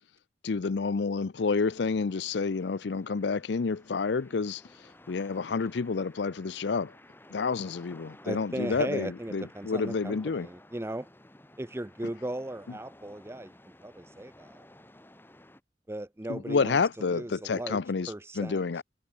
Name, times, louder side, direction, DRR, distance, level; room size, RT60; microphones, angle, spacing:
voice 1, 0.4-6.9 7.3-10.5 16.3-18.8, left 4 dB, 70° left, 0.5 m, -29 dB
sound 1, 1.4-15.6, left 1 dB, 10° left, 3.2 m, -55 dB
voice 2, 8.2-11.1 11.6-13.6 13.8-14.7 15.9-18.7, right 1 dB, 15° right, 0.7 m, -37 dB
head